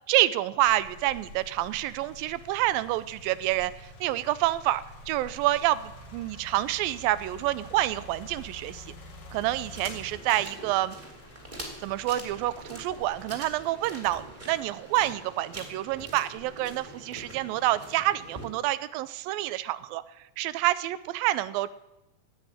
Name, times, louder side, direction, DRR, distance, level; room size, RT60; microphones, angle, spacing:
voice 1, 0.1-8.9 9.3-11.0 11.8-20.0 20.4-21.7, right 15 dB, 85° right, 16 dB, 2.3 m, -28 dB
sound 1, 0.7-15.7 16.3-17.5, left 2 dB, 70° left, 3.7 m, -48 dB
sound 2, 9.7-18.5, right 1 dB, 15° right, 2.8 m, -44 dB
16.0 x 6.2 x 9.9 m, 0.92 s
omnidirectional pair, 4.2 m